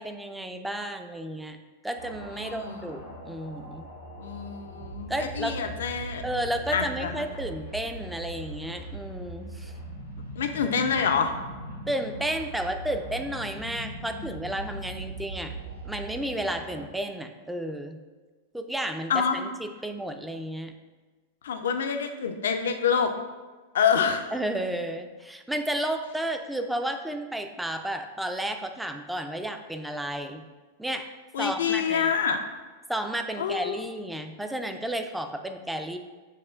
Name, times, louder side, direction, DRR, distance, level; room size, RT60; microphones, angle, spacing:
voice 1, 0.0-1.6 1.8-3.9 5.1-5.6 6.2-9.7 11.9-15.5 15.8-18.0 18.5-20.7 24.3-30.5 30.8-31.1 31.4-32.1 32.9-36.0, right 1 dB, 5° right, 6 dB, 0.3 m, -32 dB
sound 1, 2.0-16.9, right 1 dB, 85° right, 0.8 m, -40 dB
voice 2, 2.4-2.8 4.2-6.2 6.7-7.2 10.4-11.3 19.1-19.4 21.4-23.1 23.7-24.3 31.3-32.4 33.4-33.8, left 7 dB, 65° left, 6 dB, 0.4 m, -26 dB
7.0 x 2.4 x 2.3 m, 1.3 s
figure-of-eight pair, 95°, 0 cm